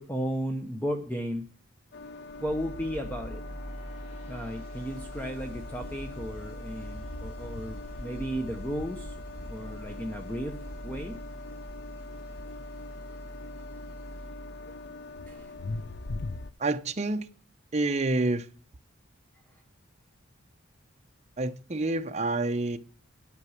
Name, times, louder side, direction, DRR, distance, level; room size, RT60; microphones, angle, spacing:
voice 1, 0.0-1.5 2.4-3.4 4.3-9.1 9.5-10.6 10.8-11.2 15.3-15.5 19.5-19.6, equal, 10° left, 0.8 m, -34 dB
sound 1, 1.9-16.5, left 3 dB, 55° left, 0.7 m, -42 dB
sound 2, 2.3-15.3, right 1 dB, 30° left, 4.6 m, -44 dB
voice 2, 16.6-17.3 17.7-18.5 21.4-22.8, right 2 dB, 35° right, 0.7 m, -28 dB
11.0 x 6.0 x 7.2 m
head